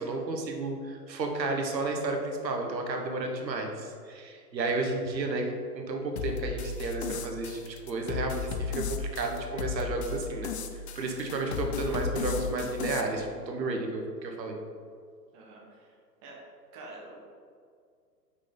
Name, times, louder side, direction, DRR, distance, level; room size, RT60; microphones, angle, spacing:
voice 1, 0.0-14.6, right 2 dB, 80° right, 2 dB, 1.2 m, -32 dB
sound 1, 6.2-13.0, left 6 dB, 45° left, 0.5 m, -35 dB
voice 2, 15.3-16.0 16.2-16.4 16.7-17.3, right 2 dB, 25° right, -3 dB, 1.3 m, -47 dB
6.3 x 5.1 x 3.9 m, 2.1 s
hypercardioid pair, 135°, 50 cm